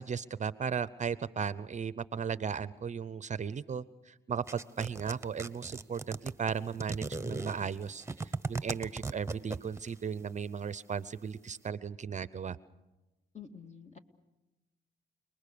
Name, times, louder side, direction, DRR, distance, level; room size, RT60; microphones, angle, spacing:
voice 1, 0.0-12.6, right 6 dB, 35° right, 16 dB, 0.7 m, -36 dB
sound 1, 4.5-9.9, right 3 dB, 15° right, 1.1 m, -37 dB
voice 2, 13.3-14.0, left 7 dB, 35° left, 6 dB, 2.2 m, -48 dB
29.5 x 20.5 x 6.9 m, 1.1 s
cardioid pair, 90°, 20 cm